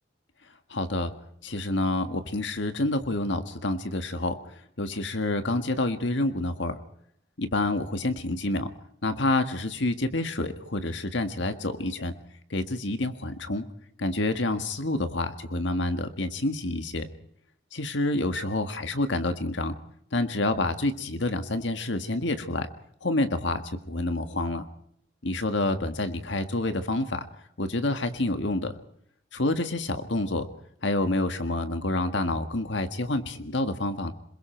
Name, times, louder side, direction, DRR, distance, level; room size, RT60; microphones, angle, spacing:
voice 1, 0.7-1.1 1.4-6.8 7.4-8.7 9.0-12.1 12.5-13.7 14.0-17.1 17.7-19.8 20.1-22.7 23.0-24.7 25.2-27.3 27.6-28.7 29.3-30.5 30.8-34.1, left 2 dB, 65° left, 8 dB, 1.8 m, -28 dB
27.5 x 22.0 x 4.6 m, 0.67 s
head